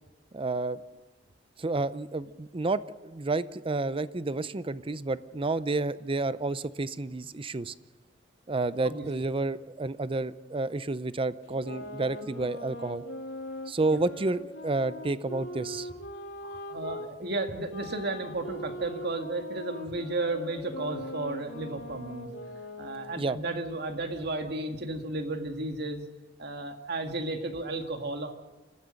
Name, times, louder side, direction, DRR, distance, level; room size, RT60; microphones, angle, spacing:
voice 1, 0.3-0.8 1.6-7.7 8.5-13.0 13.7-15.9 23.2-23.4, right 3 dB, 30° right, 15 dB, 0.6 m, -30 dB
sound 1, 11.5-17.1 17.7-23.3, left 1 dB, 85° left, 2.8 m, -41 dB
voice 2, 16.4-22.3 22.8-26.0 26.4-28.3, right 2 dB, 60° right, 5 dB, 1.9 m, -33 dB
27.0 x 15.0 x 6.5 m, 1.2 s
head